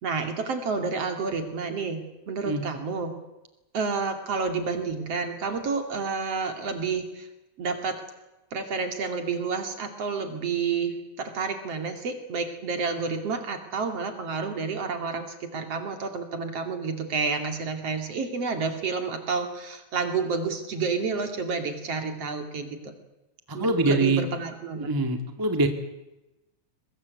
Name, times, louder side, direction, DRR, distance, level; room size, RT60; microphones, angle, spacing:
voice 1, 0.0-3.1 3.7-7.3 7.6-8.0 8.5-22.9 23.5-24.9, right 4 dB, 55° right, 6 dB, 3.5 m, -30 dB
voice 2, 23.5-24.2 24.8-25.7, right 2 dB, 10° right, 6 dB, 1.6 m, -24 dB
23.5 x 20.0 x 8.3 m, 0.98 s
omnidirectional pair, 3.4 m